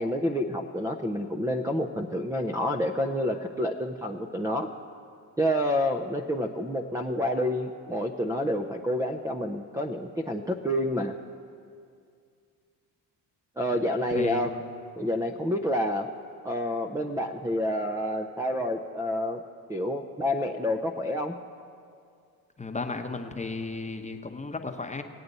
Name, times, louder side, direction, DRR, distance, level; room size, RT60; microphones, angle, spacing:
voice 1, 0.0-4.7 5.4-11.1 13.6-14.5 15.0-16.1 16.4-19.4 19.7-21.3, equal, 5° right, 4 dB, 0.5 m, -28 dB
voice 2, 14.1-14.4 22.6-25.0, left 3 dB, 15° left, 5 dB, 0.9 m, -34 dB
18.5 x 8.6 x 4.1 m, 2.3 s
supercardioid pair, 65°, 45 cm